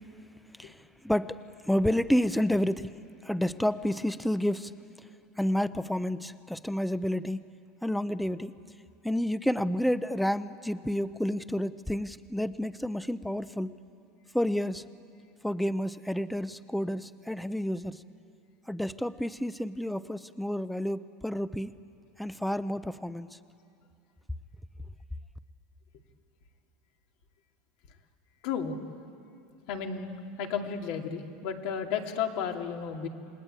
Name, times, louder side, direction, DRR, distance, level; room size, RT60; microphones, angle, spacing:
voice 1, 1.0-3.0 3.2-4.7 5.4-7.5 7.8-8.6 9.0-13.8 14.3-14.9 15.4-18.0 18.7-21.7 22.2-23.4, equal, ahead, 14 dB, 0.6 m, -30 dB
voice 2, 28.4-28.8 29.7-33.1, left 7 dB, 65° left, 3 dB, 2.7 m, -33 dB
29.0 x 20.5 x 9.0 m, 2.7 s
supercardioid pair, 135°, 0 cm